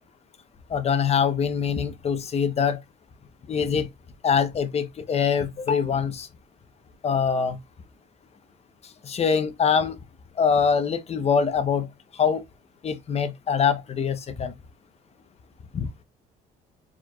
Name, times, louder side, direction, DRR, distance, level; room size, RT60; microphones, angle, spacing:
voice 1, 0.7-2.8 3.5-3.9 4.2-6.3 7.0-7.6 9.0-10.0 10.4-11.9 12.2-12.4 12.8-14.5 15.7-15.9, left 6 dB, 40° left, 0.9 m, -23 dB
4.5 x 4.5 x 2.3 m
cardioid pair, 110°, 17 cm